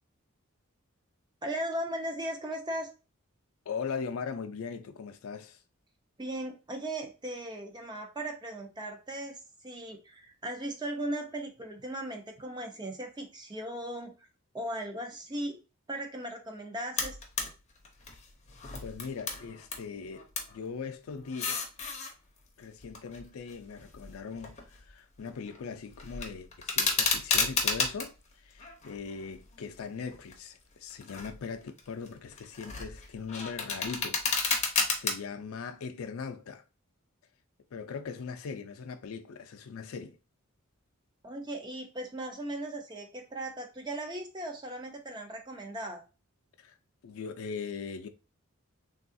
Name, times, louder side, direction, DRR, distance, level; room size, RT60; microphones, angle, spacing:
voice 1, 1.4-2.9 6.2-14.1 14.5-15.6 15.9-17.2 41.2-46.0, right 1 dB, 20° right, 0.5 m, -37 dB
voice 2, 3.7-5.6 18.8-21.6 22.6-36.6 37.7-40.2 46.6-46.8 47.0-48.1, left 5 dB, 75° left, 0.4 m, -40 dB
sound 1, 17.0-17.5 17.8-19.8 20.1-20.6 21.2-22.1 22.8-24.9 25.2-25.6 25.9-28.1 28.6-29.5 30.1-30.3 30.9-31.4 31.8-35.1, left 5 dB, 30° left, 0.6 m, -32 dB
3.4 x 2.3 x 2.5 m
head